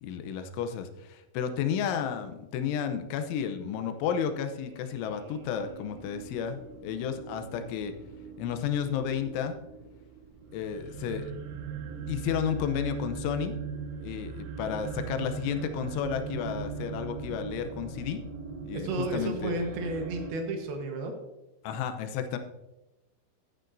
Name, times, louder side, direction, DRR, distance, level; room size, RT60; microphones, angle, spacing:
voice 1, 0.0-7.9 8.4-9.6 10.5-11.3 12.1-13.5 14.0-18.2 18.6-19.6 21.6-22.4, left 8 dB, 85° left, 8 dB, 3.2 m, -32 dB
sound 1, 4.2-20.3, right 6 dB, 85° right, 3.5 m, -40 dB
voice 2, 18.7-21.1, right 2 dB, 65° right, 4 dB, 2.8 m, -32 dB
15.5 x 8.9 x 2.6 m, 1.0 s
omnidirectional pair, 5.4 m